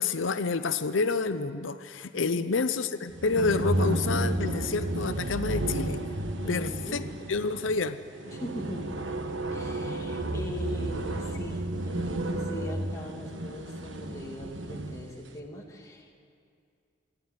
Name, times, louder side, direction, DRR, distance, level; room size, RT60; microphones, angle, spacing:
voice 1, 0.0-6.0 6.5-7.0 7.3-8.0, left 4 dB, 85° left, 11 dB, 0.6 m, -28 dB
voice 2, 2.2-2.5 6.4-7.1 8.3-9.0 9.5-16.2, left 1 dB, 15° left, -1 dB, 2.4 m, -40 dB
sound 1, 3.1-15.1, right 1 dB, 80° right, 1.4 m, -32 dB
27.0 x 11.5 x 9.5 m, 2.4 s
head